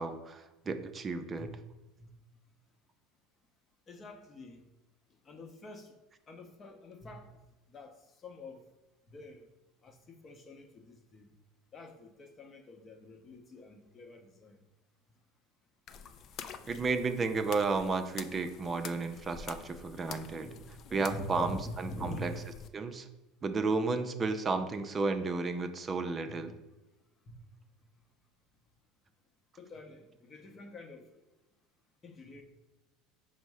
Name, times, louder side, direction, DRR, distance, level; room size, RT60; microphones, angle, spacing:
voice 1, 0.0-1.5 16.7-20.6 20.9-21.6 22.0-22.3 22.7-23.1 23.4-26.5, right 4 dB, 30° right, 8 dB, 0.5 m, -32 dB
voice 2, 3.9-4.6 5.3-5.9 6.3-7.3 7.7-7.9 8.2-8.6 9.1-9.4 9.8-11.3 11.7-14.6 20.4-20.6 21.0-22.3 26.3-26.4 27.3-27.4 29.6-31.1 32.0-32.4, left 2 dB, 30° left, 5 dB, 0.7 m, -46 dB
sound 1, 15.9-22.7, left 7 dB, 50° left, 0.3 m, -48 dB
5.2 x 2.1 x 4.7 m, 1.0 s
supercardioid pair, 95°, 0 cm